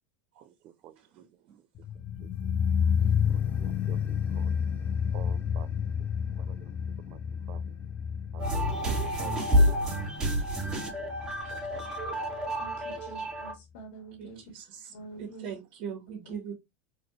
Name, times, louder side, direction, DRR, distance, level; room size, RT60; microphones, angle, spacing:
voice 1, 0.4-1.2 2.2-2.3 3.0-4.5 5.1-5.7 6.4-6.7 7.1-7.2 7.5-7.7 8.3-8.8 9.2-10.0 10.6-11.1 11.5-12.3 12.9-13.0, right 11 dB, 45° right, 0.4 m, -50 dB
sound 1, 1.8-12.8 13.0-13.1, left 7 dB, 30° left, 0.5 m, -30 dB
sound 2, 8.4-13.5, equal, 15° right, 1.9 m, -28 dB
voice 2, 12.6-14.4 14.9-15.5, right 3 dB, 75° left, 2.2 m, -47 dB
voice 3, 15.2-16.5, right 7 dB, 60° right, 1.3 m, -39 dB
4.3 x 2.7 x 2.8 m
supercardioid pair, 130°, 6 cm